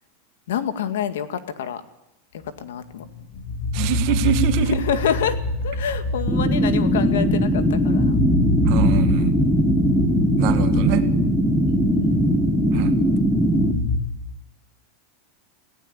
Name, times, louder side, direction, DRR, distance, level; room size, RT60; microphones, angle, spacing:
voice 1, 0.5-1.8 2.6-3.0 4.6-5.4 5.6-8.2 9.7-10.1 11.7-12.2, left 8 dB, 90° left, 10 dB, 2.1 m, -27 dB
sound 1, 2.9-14.0, left 2 dB, 65° left, 4.3 m, -26 dB
voice 2, 3.7-4.8 8.6-9.3 10.4-11.1 12.7-12.9, right 12 dB, 40° right, 10 dB, 1.6 m, -24 dB
sound 2, 6.3-13.7, equal, ahead, 1.6 m, -20 dB
18.5 x 16.5 x 8.9 m, 0.88 s
supercardioid pair, 175°, 0 cm